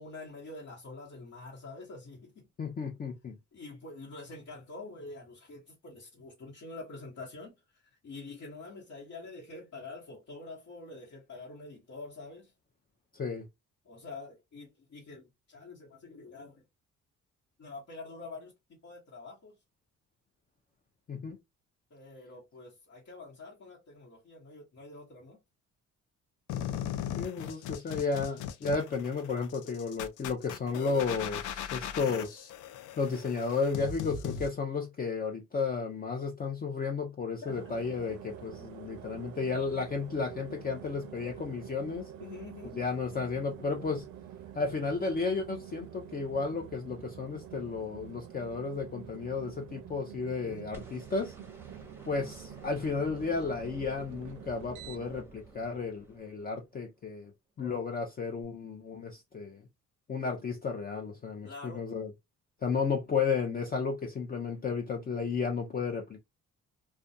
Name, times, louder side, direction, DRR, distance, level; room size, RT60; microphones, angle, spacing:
voice 1, 0.0-2.4 3.5-7.6 8.0-12.5 13.8-16.6 17.6-18.5 18.8-19.5 21.9-25.4 27.9-28.0 42.2-42.8 50.4-50.7 57.6-57.8 61.4-61.8, left 3 dB, 55° left, 1.1 m, -46 dB
voice 2, 2.6-3.3 13.1-13.4 21.1-21.4 27.1-32.5 33.0-42.1 42.6-44.1 44.5-51.3 52.0-57.3 57.6-59.6 60.1-62.1 62.6-66.2, left 4 dB, 30° left, 0.5 m, -33 dB
sound 1, 26.5-34.5, left 9 dB, 80° left, 0.5 m, -38 dB
sound 2, 37.5-55.2, right 10 dB, 70° right, 0.4 m, -47 dB
sound 3, 50.7-56.9 58.4-58.5, right 3 dB, 10° right, 0.8 m, -51 dB
2.4 x 2.2 x 2.6 m
cardioid pair, 90°, 30 cm